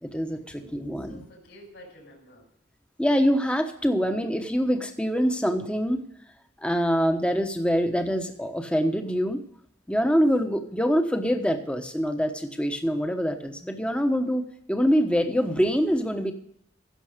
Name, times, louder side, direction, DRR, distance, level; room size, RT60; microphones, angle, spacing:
voice 1, 0.0-1.2 3.0-6.0 6.6-9.4 9.9-16.3, equal, 5° left, 6 dB, 1.0 m, -25 dB
voice 2, 0.5-2.4, equal, 65° left, -2 dB, 5.2 m, -49 dB
15.5 x 6.9 x 5.1 m, 0.73 s
head